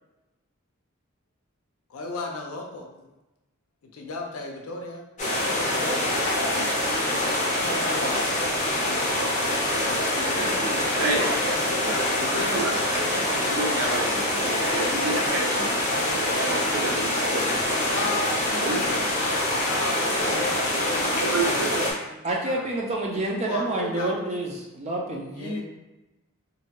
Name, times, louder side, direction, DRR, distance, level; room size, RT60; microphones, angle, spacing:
voice 1, 1.9-3.1 3.9-5.0 5.4-5.9 7.5-8.2 10.3-12.6 13.4-13.7 17.9-19.1 19.5-22.8 23.1-24.2 25.3-25.6, left 3 dB, 85° left, 1 dB, 0.5 m, -36 dB
sound 1, 5.2-21.9, left 1 dB, 35° left, 0.6 m, -25 dB
voice 2, 12.2-15.8 16.1-17.8 18.6-18.8 21.2-21.8, right 3 dB, 85° right, 0 dB, 0.5 m, -30 dB
voice 3, 22.2-25.6, right 2 dB, 30° right, -1 dB, 0.3 m, -28 dB
2.6 x 2.2 x 2.8 m, 1.0 s
head